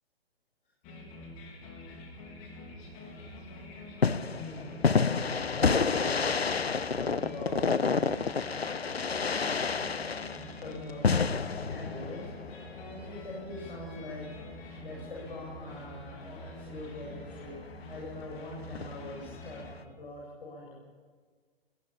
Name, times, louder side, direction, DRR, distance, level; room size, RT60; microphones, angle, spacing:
sound 1, 0.8-19.7, left 1 dB, 25° left, 4.6 m, -46 dB
sound 2, 4.0-13.2 18.7-19.1, left 5 dB, 80° left, 0.9 m, -29 dB
voice 1, 4.3-4.8 5.5-6.3 7.0-7.9 10.2-12.3 12.7-14.3 14.8-17.5 17.9-20.8, left 2 dB, 60° left, -3 dB, 7.6 m, -43 dB
21.0 x 20.5 x 7.2 m, 1.6 s
figure-of-eight pair, 125°, 30 cm